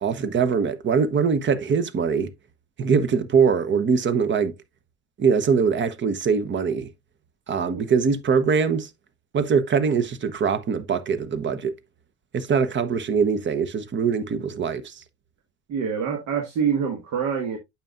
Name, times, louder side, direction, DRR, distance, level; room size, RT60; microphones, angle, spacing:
voice 1, 0.0-2.3 2.8-4.6 5.2-6.9 7.5-8.9 9.3-11.8 12.3-14.9, right 6 dB, 35° right, 1.0 m, -22 dB
voice 2, 15.7-17.6, right 7 dB, 55° right, 1.8 m, -25 dB
8.9 x 6.0 x 2.4 m
hypercardioid pair, 70°, 35 cm